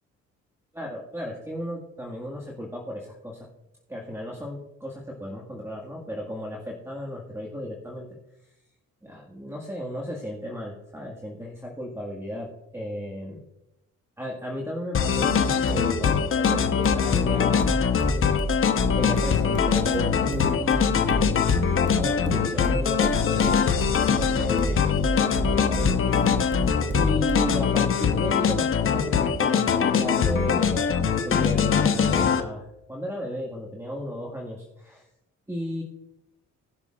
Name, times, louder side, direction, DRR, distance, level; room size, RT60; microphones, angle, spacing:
voice 1, 0.7-3.5 3.9-8.2 9.0-13.4 14.2-15.3 15.7-18.3 19.0-21.5 22.0-23.6 24.0-25.9 26.9-35.1 35.5-35.8, equal, 10° right, -2 dB, 1.8 m, -35 dB
sound 1, 14.9-32.4, left 7 dB, 45° left, 1.0 m, -22 dB
sound 2, 15.3-27.7, right 1 dB, 40° right, 1.3 m, -30 dB
20.0 x 6.7 x 2.5 m, 0.92 s
cardioid pair, 90°, 30 cm